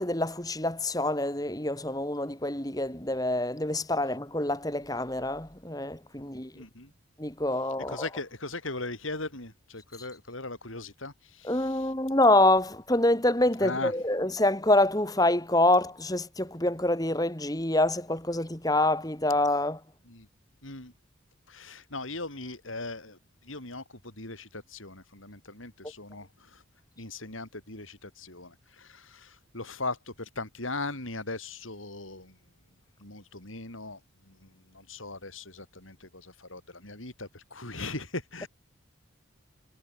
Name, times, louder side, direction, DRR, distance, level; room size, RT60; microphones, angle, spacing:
voice 1, 0.0-6.5 7.2-8.1 11.4-19.8, left 1 dB, 20° left, 2.3 m, -26 dB
voice 2, 6.5-6.9 7.8-11.9 13.6-13.9 20.0-20.3 20.6-20.9 21.5-26.6 27.0-32.4 33.0-38.5, left 2 dB, 90° left, 8.0 m, -39 dB
head